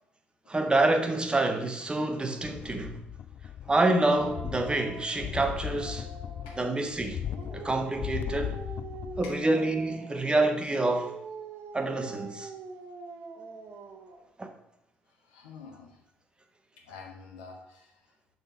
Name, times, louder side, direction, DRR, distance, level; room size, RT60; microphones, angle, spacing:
voice 1, 0.5-3.0 3.7-6.1 6.6-7.2 7.5-8.6 9.2-11.1 11.7-12.5 14.4-14.5, right 2 dB, 20° right, 1.0 m, -27 dB
sound 1, 2.4-3.9 4.1-9.5 9.8-9.9, left 10 dB, 45° left, 0.3 m, -38 dB
Dog, 4.0-6.8 7.2-10.3 10.7-14.3, right 4 dB, 50° right, 1.0 m, -44 dB
voice 2, 15.2-16.0 16.8-18.0, left 4 dB, 70° left, 1.2 m, -47 dB
6.7 x 4.0 x 5.8 m
figure-of-eight pair, 45°, 5 cm